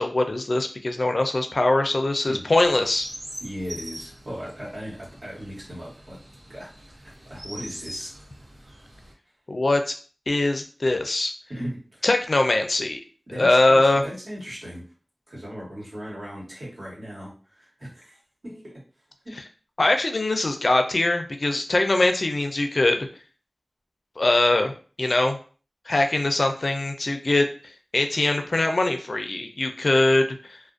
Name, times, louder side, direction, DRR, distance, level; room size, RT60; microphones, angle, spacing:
voice 1, 0.0-3.1 9.5-9.9 10.3-11.3 12.0-13.0 13.4-14.0 19.8-23.1 24.2-25.4 25.9-27.5 27.9-30.6, left 2 dB, 65° left, 5 dB, 0.4 m, -22 dB
Chirp tweet, 2.5-9.1, equal, 80° right, 0.6 m, -43 dB
voice 2, 3.4-6.2 6.5-7.0 7.3-8.1 11.5-12.0 13.3-14.8 15.3-18.8 19.2-19.4, equal, 65° right, -6 dB, 1.3 m, -37 dB
2.4 x 2.1 x 2.4 m, 0.39 s
wide cardioid pair, 50°, 0 cm